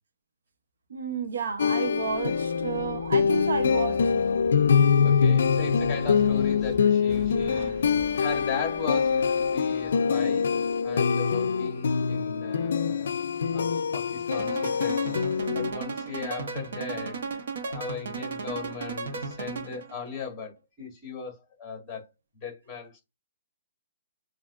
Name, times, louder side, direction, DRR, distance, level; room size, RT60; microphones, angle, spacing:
voice 1, 0.9-4.1 7.4-7.8, right 6 dB, 85° right, 0.8 m, -32 dB
sound 1, 1.5-12.3 12.8-14.0, equal, 20° right, 0.9 m, -45 dB
sound 2, 1.6-15.7, left 6 dB, 70° left, 0.4 m, -24 dB
voice 2, 5.0-7.8 8.1-10.5 10.8-13.2 13.5-15.2 15.5-17.2 17.6-22.1 22.4-23.0, left 5 dB, 10° left, 1.9 m, -37 dB
sound 3, 14.3-19.9, right 4 dB, 60° right, 1.2 m, -35 dB
7.2 x 2.6 x 2.5 m
hypercardioid pair, 170°, 0 cm